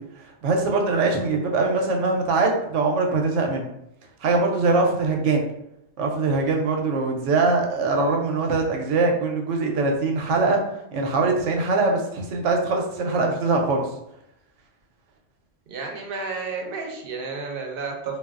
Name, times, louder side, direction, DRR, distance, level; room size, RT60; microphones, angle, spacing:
voice 1, 0.4-3.6 4.2-5.4 6.0-10.6 10.9-13.9, right 3 dB, 90° right, 2 dB, 0.9 m, -22 dB
voice 2, 15.7-18.2, right 4 dB, 60° right, 2 dB, 0.7 m, -32 dB
3.2 x 2.2 x 2.4 m, 0.80 s
omnidirectional pair, 1.2 m